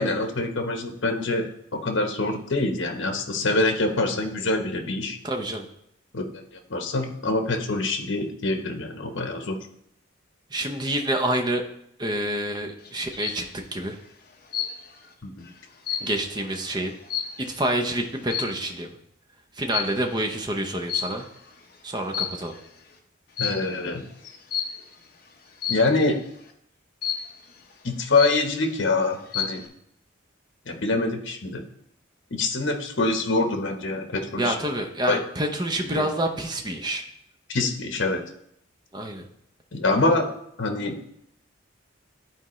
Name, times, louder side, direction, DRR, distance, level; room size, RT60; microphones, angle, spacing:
voice 1, 0.0-1.5 1.7-5.2 6.1-6.2 6.5-9.6 15.2-15.5 23.4-24.4 25.7-26.2 27.8-29.6 30.7-31.6 32.3-34.6 35.1-35.2 35.9-36.1 37.5-38.2 39.7-40.3 40.6-40.9, left 2 dB, 70° left, 4 dB, 1.0 m, -25 dB
voice 2, 5.2-5.7 10.5-11.6 12.0-14.0 16.0-16.9 17.4-18.9 19.6-21.3 21.8-22.5 34.4-37.0 38.9-39.3, right 1 dB, 20° right, 4 dB, 0.7 m, -27 dB
sound 1, 12.8-13.5 14.5-15.1 15.4-17.7 18.3-18.7 19.7-20.1 20.9-21.5 22.0-22.7 23.4-23.7 24.5-24.9 25.6-26.0 27.0-27.5 27.9-28.0 28.2-28.8 29.1-29.7, left 8 dB, 45° left, 0.8 m, -31 dB
11.0 x 4.3 x 3.1 m, 0.73 s
head